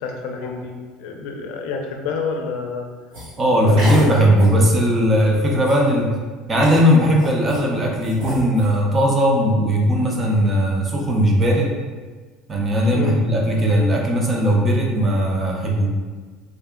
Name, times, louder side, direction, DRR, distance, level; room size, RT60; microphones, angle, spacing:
voice 1, 0.0-2.9 3.6-4.3 12.9-13.2, left 4 dB, 70° left, 2 dB, 0.5 m, -28 dB
sound 1, 3.1-3.3 3.8-4.1 4.4-4.6 5.1-5.2 5.5-6.0 6.6-7.6 8.0-8.7, equal, 75° right, 1.4 m, -30 dB
voice 2, 3.4-6.1 6.5-11.8 12.5-15.9, equal, 20° right, -1 dB, 0.5 m, -18 dB
3.5 x 2.1 x 3.6 m, 1.4 s
cardioid pair, 150°, 0 cm